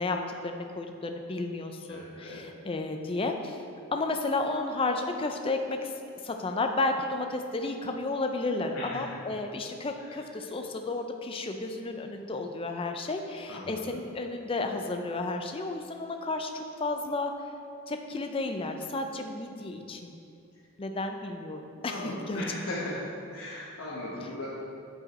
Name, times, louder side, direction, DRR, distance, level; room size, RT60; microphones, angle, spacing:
voice 1, 0.0-3.6 3.9-5.9 6.2-17.3 17.9-20.2 20.8-22.4, left 2 dB, 25° left, 5 dB, 0.4 m, -32 dB
voice 2, 1.9-2.4 8.7-9.2 10.0-10.2 13.5-14.1 21.8-23.0 23.3-24.5, left 1 dB, 70° left, -7 dB, 1.1 m, -38 dB
8.1 x 4.8 x 4.2 m, 2.5 s
head